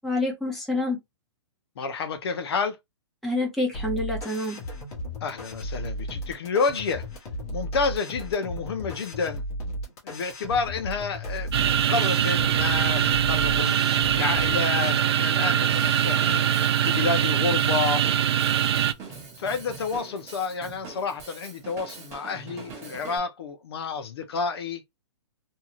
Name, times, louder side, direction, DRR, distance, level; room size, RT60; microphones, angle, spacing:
voice 1, 0.0-1.0 3.2-4.6, left 2 dB, ahead, 0.9 m, -27 dB
voice 2, 1.8-2.8 5.2-7.0 7.5-9.4 10.0-13.7 14.1-16.5 16.8-18.0 19.4-24.8, left 5 dB, 60° left, 0.6 m, -29 dB
sound 1, 3.7-15.0, left 1 dB, 30° left, 1.1 m, -35 dB
sound 2, 11.5-18.9, right 9 dB, 60° right, 0.4 m, -23 dB
Drum kit / Drum, 15.7-23.2, right 4 dB, 20° right, 1.0 m, -43 dB
2.7 x 2.3 x 2.9 m
hypercardioid pair, 160°, 15 cm